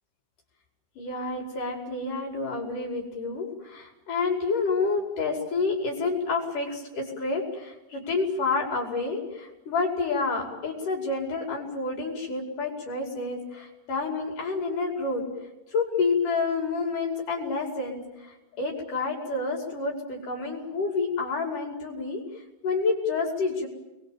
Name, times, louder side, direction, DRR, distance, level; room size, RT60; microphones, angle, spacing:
voice 1, 1.0-15.2 15.7-22.2 22.6-23.7, left 4 dB, 65° left, 1 dB, 7.0 m, -29 dB
29.5 x 23.0 x 7.4 m, 0.98 s
omnidirectional pair, 4.1 m